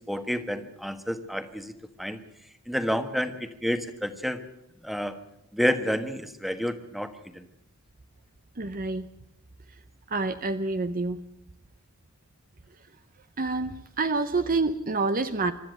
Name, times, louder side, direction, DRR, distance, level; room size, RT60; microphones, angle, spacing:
voice 1, 0.1-1.7 2.0-2.2 2.7-4.4 4.8-5.2 5.5-7.4, equal, ahead, 9 dB, 1.4 m, -29 dB
voice 2, 8.6-9.1 10.1-11.2 13.4-15.5, right 3 dB, 40° right, 10 dB, 0.8 m, -27 dB
24.0 x 13.0 x 9.0 m, 0.82 s
head